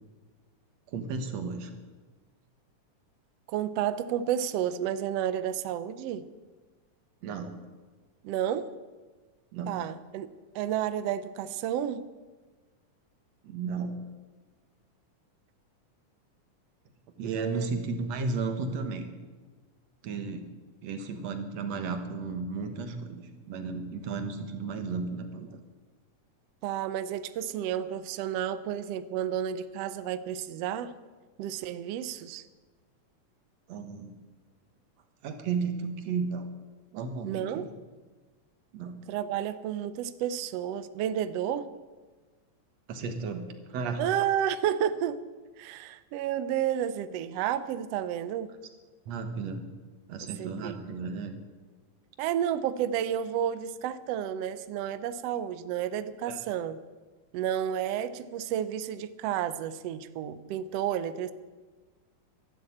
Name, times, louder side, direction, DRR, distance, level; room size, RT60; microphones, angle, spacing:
voice 1, 0.9-1.7 7.2-7.5 9.5-9.7 13.4-14.0 17.2-19.1 20.0-20.4 20.8-25.6 33.7-34.1 35.2-36.5 36.9-37.8 38.7-38.9 42.9-44.0 49.1-49.6 50.1-51.3 56.3-56.4, right 4 dB, 65° right, 7 dB, 2.3 m, -34 dB
voice 2, 3.5-6.2 8.2-8.7 9.7-10.3 10.5-12.0 17.2-17.7 26.6-30.9 31.4-32.5 37.2-37.7 39.1-41.7 44.0-45.2 45.6-48.5 50.4-50.8 52.2-56.8 57.3-61.3, right 10 dB, 80° right, 13 dB, 1.4 m, -31 dB
13.0 x 11.5 x 8.5 m, 1.3 s
omnidirectional pair, 3.6 m